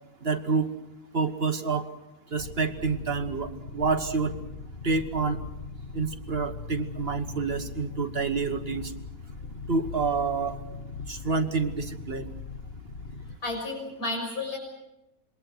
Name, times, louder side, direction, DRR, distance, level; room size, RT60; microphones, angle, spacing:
voice 1, 0.2-0.7 1.1-1.9 2.3-4.3 4.8-5.4 5.9-8.9 9.7-10.6 11.1-12.3, right 4 dB, 40° right, 7 dB, 1.5 m, -28 dB
sound 1, 2.4-13.4, left 4 dB, 40° left, 1.5 m, -40 dB
voice 2, 13.4-14.6, left 2 dB, 80° left, 2 dB, 6.7 m, -32 dB
27.5 x 22.5 x 6.1 m, 0.90 s
omnidirectional pair, 1.6 m